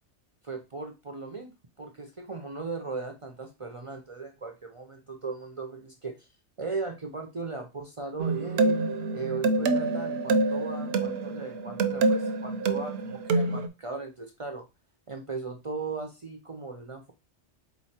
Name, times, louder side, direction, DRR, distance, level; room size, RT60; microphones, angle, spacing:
voice 1, 0.4-6.3 6.6-8.8 9.1-14.7 15.1-17.1, right 4 dB, 40° right, 4 dB, 0.4 m, -37 dB
sound 1, 8.2-13.7, right 3 dB, 65° right, 0.8 m, -26 dB
4.0 x 3.1 x 4.2 m, 0.26 s
omnidirectional pair, 1.2 m